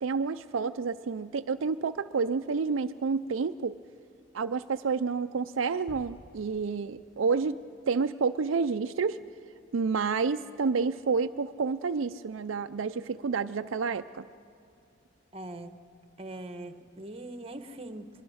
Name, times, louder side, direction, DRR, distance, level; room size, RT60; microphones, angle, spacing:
voice 1, 0.0-3.8 4.3-7.6 7.9-9.2 9.7-14.2, right 5 dB, 75° right, 9 dB, 0.5 m, -29 dB
sound 1, 5.9-7.8 8.2-8.3, equal, 5° left, 4.0 m, -53 dB
voice 2, 15.3-15.7 16.2-18.1, right 1 dB, 30° right, 9 dB, 1.1 m, -41 dB
24.0 x 22.0 x 6.3 m, 2.5 s
head